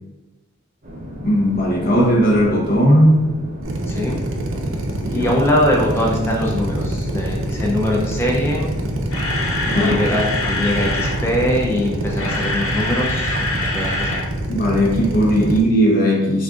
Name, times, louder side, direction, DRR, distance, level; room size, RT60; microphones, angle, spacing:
sound 1, 0.8-12.4, equal, 40° right, 0.8 m, -34 dB
voice 1, 1.2-3.3 5.0-5.3 9.6-10.0 14.5-16.4, equal, 45° left, -2 dB, 0.9 m, -17 dB
Drill, 3.6-15.6, right 1 dB, 65° right, 0.6 m, -25 dB
voice 2, 3.9-4.2 5.1-8.7 9.7-14.2, left 1 dB, 10° left, -2 dB, 0.5 m, -22 dB
Camera, 9.0-11.2 12.0-14.3 14.5-14.7 15.1-15.2, left 2 dB, 75° left, 0.7 m, -25 dB
6.0 x 2.6 x 2.4 m, 1.1 s
head